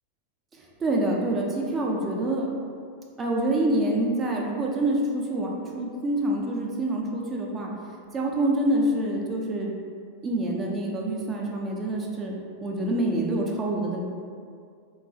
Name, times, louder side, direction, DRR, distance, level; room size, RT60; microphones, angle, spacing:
voice 1, 0.6-2.5 3.2-7.7 8.1-9.7 10.2-12.3 12.6-14.0, right 1 dB, 20° right, -1 dB, 0.4 m, -26 dB
2.9 x 2.3 x 2.5 m, 2.2 s
figure-of-eight pair, 90°, 0 cm